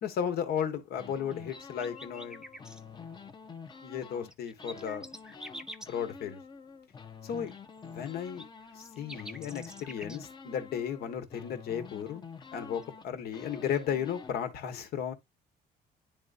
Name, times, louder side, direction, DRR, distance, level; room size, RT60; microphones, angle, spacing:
voice 1, 0.0-2.7 3.8-5.1 5.9-6.4 7.2-7.5 7.8-8.5 8.7-12.2 12.5-15.1, left 8 dB, 65° left, 1.5 m, -34 dB
sound 1, 1.0-4.3 4.6-14.3, left 5 dB, 25° left, 0.8 m, -47 dB
sound 2, 1.3-2.8 4.1-5.9 7.5-10.2 12.8-12.9, right 1 dB, 5° right, 0.6 m, -47 dB
10.0 x 3.8 x 2.6 m
cardioid pair, 110°, 17 cm